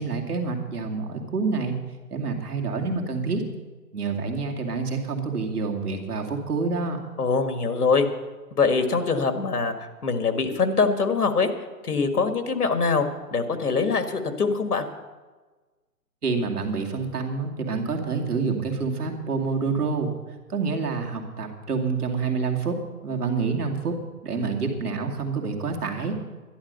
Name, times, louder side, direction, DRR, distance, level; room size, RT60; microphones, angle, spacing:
voice 1, 0.0-1.8 2.1-3.4 3.9-7.0 16.2-20.1 20.5-24.0 24.2-26.2, right 4 dB, 65° right, 2 dB, 2.4 m, -27 dB
voice 2, 7.2-8.1 8.5-11.5 11.8-14.9, left 4 dB, 65° left, 8 dB, 1.7 m, -23 dB
11.5 x 11.5 x 6.7 m, 1.3 s
hypercardioid pair, 175°, 48 cm